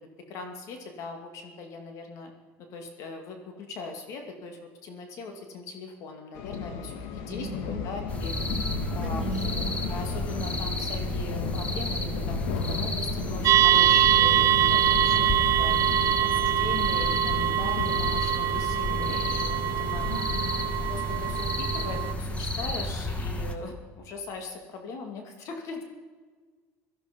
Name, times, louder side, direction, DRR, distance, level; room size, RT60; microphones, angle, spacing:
voice 1, 0.3-2.3 2.7-8.7 8.9-9.2 9.9-12.4 12.7-15.2 15.6-20.1 20.8-25.8, left 4 dB, 55° left, 4 dB, 2.3 m, -40 dB
sound 1, 6.3-22.1, left 5 dB, 75° left, 1.8 m, -35 dB
voice 2, 7.3-7.8 9.0-9.6 20.1-20.7, right 3 dB, 10° right, -3 dB, 5.3 m, -37 dB
sound 2, 8.1-23.5, left 1 dB, 20° left, 1.7 m, -32 dB
sound 3, 13.5-22.1, right 12 dB, 55° right, 0.5 m, -24 dB
17.5 x 14.0 x 5.2 m, 1.5 s
supercardioid pair, 120°, 6 cm